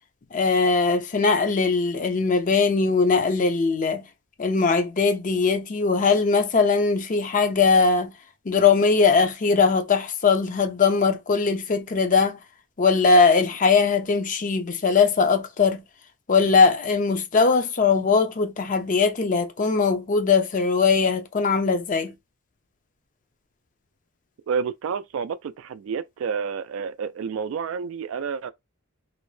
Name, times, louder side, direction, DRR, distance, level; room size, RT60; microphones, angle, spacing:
voice 1, 0.3-4.0 4.4-8.1 8.5-12.4 12.8-15.8 16.3-22.1, left 4 dB, 35° left, 0.5 m, -20 dB
voice 2, 24.5-28.5, right 6 dB, 65° right, 0.3 m, -29 dB
2.5 x 2.1 x 3.1 m
head